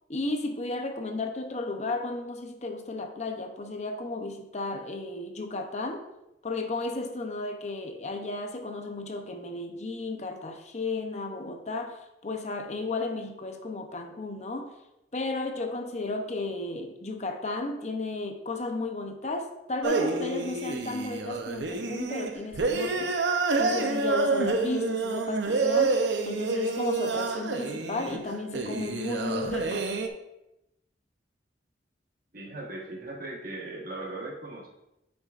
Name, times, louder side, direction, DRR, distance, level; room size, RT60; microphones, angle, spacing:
voice 1, 0.1-6.1 6.4-14.8 15.1-23.2 23.6-29.9, left 2 dB, 40° left, 5 dB, 0.7 m, -34 dB
sound 1, 19.8-30.1, right 3 dB, 75° right, 0.7 m, -28 dB
voice 2, 32.3-34.7, right 2 dB, 50° right, -1 dB, 1.3 m, -38 dB
9.7 x 6.0 x 2.5 m, 0.89 s
head